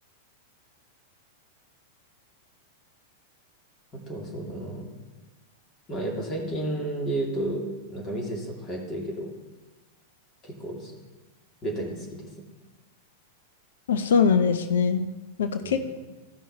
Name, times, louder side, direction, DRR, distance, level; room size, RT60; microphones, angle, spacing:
voice 1, 3.9-4.9 5.9-9.3 10.4-10.9 11.6-12.4 15.6-15.8, right 1 dB, 30° left, -1 dB, 2.6 m, -32 dB
voice 2, 13.9-15.1 15.4-16.0, left 6 dB, 65° left, 9 dB, 0.6 m, -22 dB
14.0 x 5.4 x 4.3 m, 1.2 s
figure-of-eight pair, 95°, 0 cm